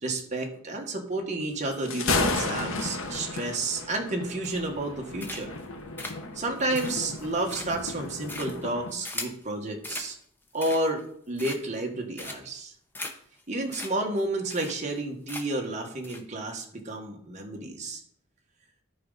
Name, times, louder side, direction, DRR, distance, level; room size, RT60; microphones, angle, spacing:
voice 1, 0.0-5.5 6.3-10.1 10.5-12.7 13.5-18.0, right 2 dB, 35° right, 1 dB, 1.5 m, -31 dB
Thunder, 1.7-9.0, left 3 dB, 80° left, 1.0 m, -33 dB
sound 1, 4.4-4.9 5.2-5.6 6.0-9.4 9.8-10.1 10.5-11.0 11.4-11.8 12.2-12.6 12.9-13.1 13.4-13.5 13.7-13.9 14.2-14.3 14.5-15.0 15.3-15.7 16.0-16.2, left 2 dB, 10° left, 0.8 m, -39 dB
12.5 x 5.1 x 4.0 m, 0.65 s
head